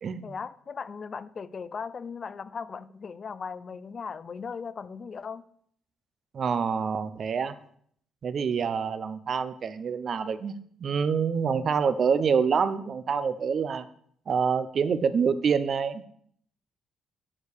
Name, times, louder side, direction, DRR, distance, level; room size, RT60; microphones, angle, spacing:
voice 1, 0.2-5.4, left 5 dB, 45° left, 16 dB, 0.6 m, -38 dB
voice 2, 6.3-7.5 8.2-10.5 10.8-13.9 14.3-16.1, right 6 dB, 50° right, 12 dB, 0.7 m, -26 dB
9.7 x 4.6 x 6.7 m, 0.65 s
cardioid pair, 90°, 0 cm